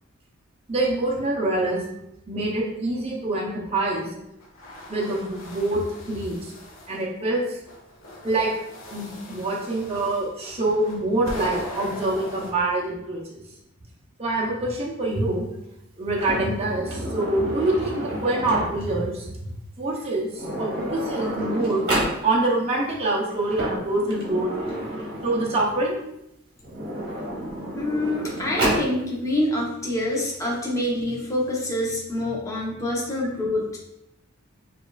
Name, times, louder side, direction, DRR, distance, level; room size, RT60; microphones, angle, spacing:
voice 1, 0.7-1.8 2.3-4.1 4.9-6.5 6.9-7.6 8.2-8.5 8.9-13.2 14.2-15.5 16.0-19.3 19.8-21.8 22.2-24.5 25.2-26.0, right 2 dB, 30° right, -3 dB, 0.6 m, -25 dB
sound 1, 4.4-7.0 7.6-12.5, left 1 dB, 85° left, 0.7 m, -40 dB
Sliding door, 16.1-19.0 20.0-20.1 20.3-22.2 23.3-25.8 26.6-28.9, right 1 dB, 55° right, 1.0 m, -30 dB
voice 2, 27.8-33.8, left 1 dB, 15° left, -4 dB, 0.7 m, -26 dB
5.0 x 2.5 x 2.3 m, 0.83 s
head